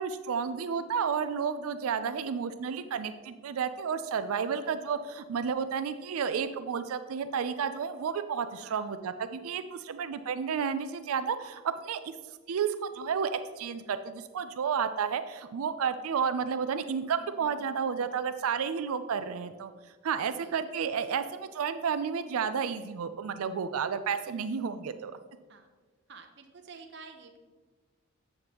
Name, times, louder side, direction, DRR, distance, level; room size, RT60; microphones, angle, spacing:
voice 1, 0.0-12.1 12.5-19.7 20.0-25.1, right 6 dB, 85° right, 10 dB, 0.4 m, -31 dB
voice 2, 8.6-9.0 17.2-17.8 20.4-20.6 24.3-24.6 25.5-25.7 26.1-27.4, right 4 dB, 50° right, 4 dB, 0.7 m, -50 dB
8.6 x 6.5 x 2.9 m, 1.4 s
head